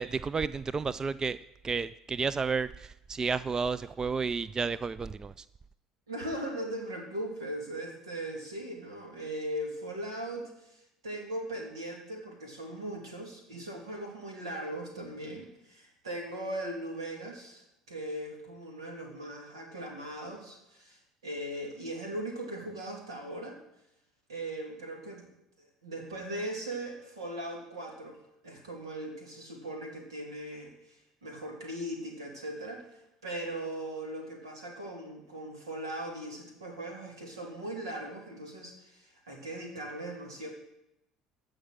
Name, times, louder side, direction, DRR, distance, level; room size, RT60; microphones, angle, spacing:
voice 1, 0.0-1.4 1.6-5.4, right 5 dB, 25° right, 17 dB, 0.3 m, -31 dB
voice 2, 6.1-23.6 24.3-25.3 25.6-40.5, right 1 dB, 85° right, 1 dB, 2.8 m, -39 dB
15.0 x 5.2 x 6.3 m, 0.85 s
hypercardioid pair, 65°, 3 cm